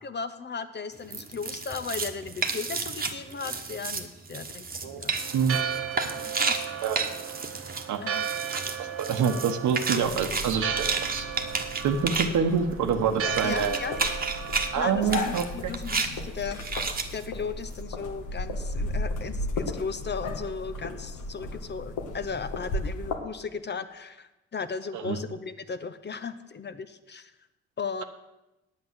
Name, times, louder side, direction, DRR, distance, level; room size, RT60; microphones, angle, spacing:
voice 1, 0.0-5.2 6.1-6.6 8.0-8.3 13.4-14.0 14.8-16.6 17.1-27.3 27.8-28.0, left 5 dB, 35° left, 11 dB, 0.7 m, -36 dB
sound 1, 0.9-12.3 12.9-13.0 13.3-14.7 15.0-15.4 15.7-16.1 16.5-17.3, right 4 dB, 30° right, 1.3 m, -32 dB
Church bell, 5.2-15.4, right 8 dB, 50° right, 1.0 m, -35 dB
voice 2, 8.8-11.2 11.8-13.8 14.7-15.7 24.9-25.2, right 6 dB, 75° right, 6 dB, 1.1 m, -26 dB
sound 2, 10.0-23.2, left 2 dB, 85° left, 1.5 m, -35 dB
8.8 x 8.5 x 7.5 m, 0.98 s
cardioid pair, 90°, 30 cm